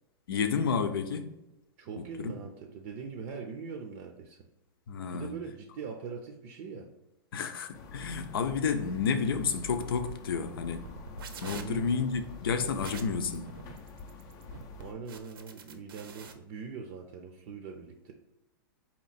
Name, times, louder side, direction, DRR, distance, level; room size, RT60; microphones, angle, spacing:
voice 1, 0.3-1.3 2.2-2.3 4.9-5.4 7.3-10.8 11.4-13.5, left 5 dB, 80° left, 0.7 m, -30 dB
voice 2, 1.8-4.5 5.1-6.9 11.5-11.9 14.8-18.1, right 5 dB, 40° right, 0.5 m, -42 dB
sound 1, 7.7-14.9, left 3 dB, 30° left, 0.5 m, -46 dB
sound 2, 10.8-16.3, right 5 dB, 80° right, 0.7 m, -46 dB
4.3 x 3.0 x 4.1 m
supercardioid pair, 155°, 12 cm